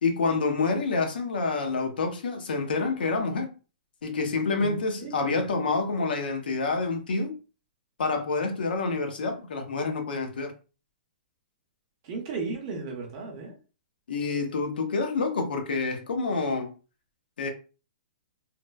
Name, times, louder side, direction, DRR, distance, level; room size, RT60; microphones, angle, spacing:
voice 1, 0.0-3.5 4.0-7.3 8.0-10.5 14.1-16.7 17.4-17.5, left 4 dB, 80° left, 0.7 m, -27 dB
voice 2, 5.0-5.4 12.0-13.5, right 4 dB, 25° right, 0.6 m, -35 dB
3.0 x 2.0 x 2.3 m
hypercardioid pair, 180°, 5 cm